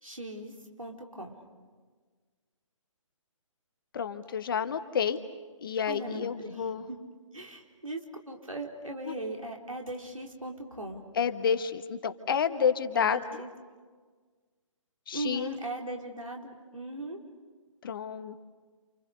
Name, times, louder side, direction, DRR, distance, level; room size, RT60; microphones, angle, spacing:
voice 1, 0.0-1.3 5.9-7.1 7.3-11.0 12.9-13.5 15.1-17.2, right 1 dB, 90° right, 1 dB, 4.5 m, -39 dB
voice 2, 3.9-5.2 5.6-6.8 9.0-9.1 11.2-13.2 15.1-15.5 17.8-18.4, left 7 dB, 40° left, 9 dB, 1.5 m, -29 dB
29.5 x 29.0 x 6.8 m, 1.5 s
figure-of-eight pair, 135°, 17 cm